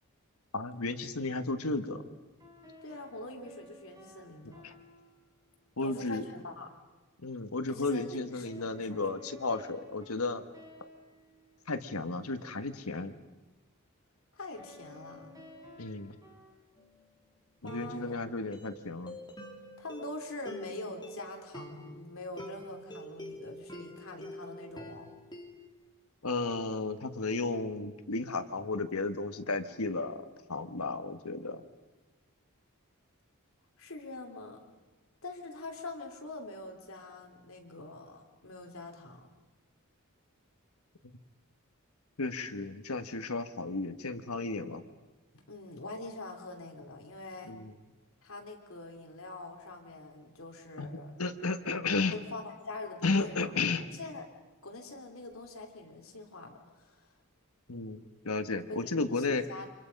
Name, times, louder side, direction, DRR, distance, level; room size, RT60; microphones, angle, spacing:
voice 1, 0.5-2.1 4.6-4.7 5.8-6.2 7.2-10.4 11.7-13.1 15.8-16.2 17.6-19.2 26.2-31.6 42.2-44.8 47.4-47.7 50.8-50.9 51.2-52.2 53.0-53.8 57.7-59.4, left 3 dB, 85° left, 9 dB, 1.5 m, -33 dB
sound 1, 2.4-5.8 8.4-12.3 14.5-16.5, left 1 dB, 15° right, 4.6 m, -54 dB
voice 2, 2.8-4.6 5.8-6.7 7.6-9.1 14.3-15.4 17.6-18.2 19.8-25.1 33.8-34.6 35.2-39.3 45.5-47.6 48.2-51.1 52.1-53.4 53.9-54.3 54.6-57.1 58.7-59.7, left 2 dB, 70° left, 2 dB, 3.4 m, -44 dB
sound 2, 16.8-17.0 17.7-25.7, equal, 20° left, 3.3 m, -46 dB
29.5 x 26.5 x 5.4 m, 1.2 s
head